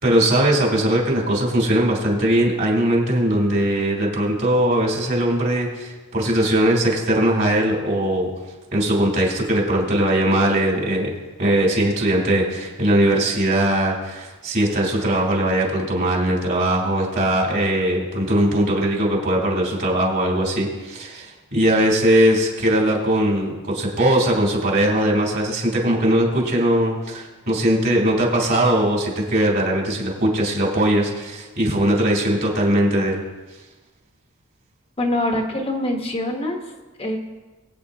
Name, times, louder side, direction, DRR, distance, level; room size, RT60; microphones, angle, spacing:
voice 1, 0.0-8.3 8.7-11.1 11.4-33.2, right 1 dB, 45° right, -2 dB, 3.3 m, -20 dB
voice 2, 35.0-36.6 37.0-37.2, left 1 dB, 25° left, 2 dB, 1.2 m, -24 dB
22.0 x 8.9 x 2.8 m, 1.2 s
head